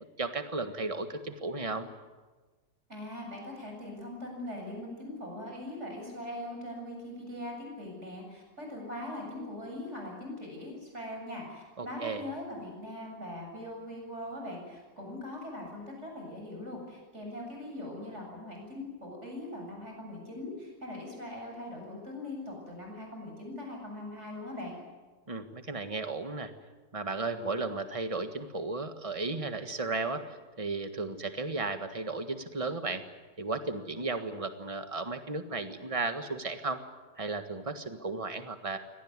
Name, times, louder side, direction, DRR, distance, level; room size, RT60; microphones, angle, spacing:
voice 1, 0.0-1.9 11.8-12.2 25.3-26.5 26.9-33.0 33.4-36.8 37.2-38.8, right 3 dB, 20° right, 8 dB, 1.5 m, -34 dB
voice 2, 2.9-24.8, left 1 dB, 40° right, 1 dB, 8.0 m, -41 dB
24.0 x 18.5 x 9.7 m, 1.3 s
omnidirectional pair, 1.8 m